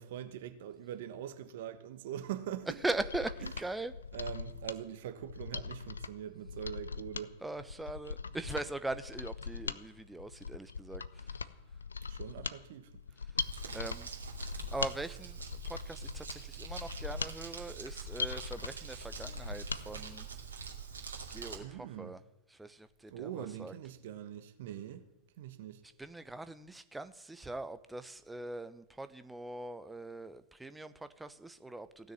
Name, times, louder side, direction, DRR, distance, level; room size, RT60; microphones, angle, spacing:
voice 1, 0.0-2.8 3.4-3.6 4.1-7.4 12.1-13.0 13.6-13.8 21.6-22.2 23.1-25.1 25.4-25.8, right 10 dB, 60° right, 1.2 m, -43 dB
Mechanisms, 2.8-19.8 20.2-20.3, left 5 dB, 80° left, 0.5 m, -41 dB
voice 2, 2.8-3.9 7.4-11.3 13.7-14.1 14.4-15.4 15.6-20.3 21.3-21.6 22.0-22.2 22.5-23.7 26.0-32.1, right 2 dB, 5° right, 0.9 m, -41 dB
Crumpling crinkling, 13.4-21.6, right 6 dB, 75° right, 2.4 m, -45 dB
16.0 x 6.6 x 9.5 m
figure-of-eight pair, 90°, 0 cm